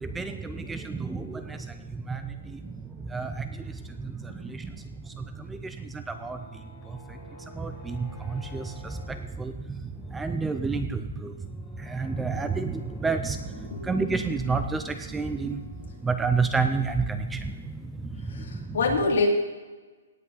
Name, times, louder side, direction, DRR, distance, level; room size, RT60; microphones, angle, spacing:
voice 1, 0.0-1.7 2.1-2.6 3.1-3.7 4.0-4.7 5.2-6.4 6.9-7.0 7.5-9.8 10.1-11.3 11.8-15.6 16.0-17.5 18.4-18.5, right 4 dB, 5° right, 8 dB, 0.3 m, -30 dB
sound 1, 5.9-17.1, left 1 dB, 15° left, 2.2 m, -53 dB
voice 2, 18.3-19.3, left 4 dB, 60° left, -1 dB, 2.8 m, -25 dB
17.5 x 7.8 x 4.0 m, 1.3 s
hypercardioid pair, 175°, 0 cm